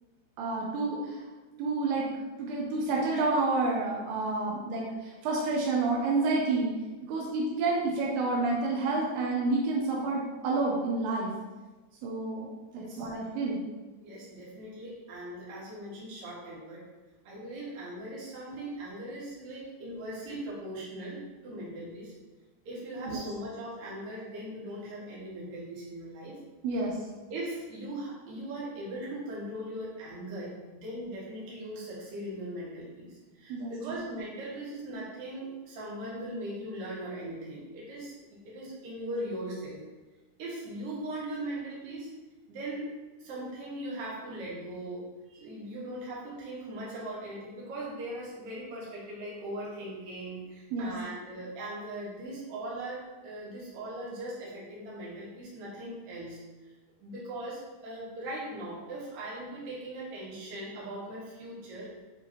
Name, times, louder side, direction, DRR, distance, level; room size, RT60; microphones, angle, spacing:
voice 1, 0.4-1.2 1.6-2.1 2.4-6.7 7.0-11.3 12.0-12.5 12.7-13.6 23.1-23.2 26.6-27.0 33.5-34.0 50.7-50.9, right 3 dB, 80° right, -3 dB, 2.3 m, -29 dB
voice 2, 12.7-13.1 14.0-16.9 17.2-22.1 22.7-26.4 27.3-39.8 40.4-42.1 42.5-42.9 43.2-45.1 45.4-56.7 57.0-61.9, right 1 dB, 55° right, -7 dB, 3.0 m, -39 dB
9.2 x 3.8 x 2.9 m, 1.2 s
omnidirectional pair, 5.4 m